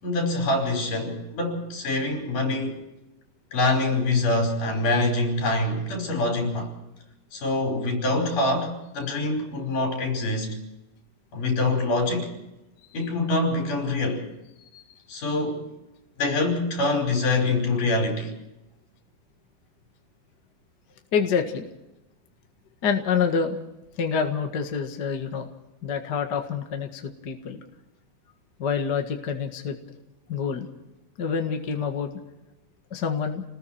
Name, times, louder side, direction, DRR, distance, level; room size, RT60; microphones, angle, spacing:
voice 1, 0.0-2.8 3.5-6.7 7.3-10.6 11.3-12.3 12.9-14.2 15.1-15.7 16.2-18.3, left 2 dB, 70° left, 6.4 m, -25 dB
voice 2, 21.1-21.7 22.8-23.6 24.0-25.5 25.8-27.6 28.6-29.8 30.3-30.7 31.2-32.1 32.9-33.4, left 6 dB, 40° left, 1.8 m, -27 dB
29.5 x 20.0 x 4.4 m
omnidirectional pair, 3.9 m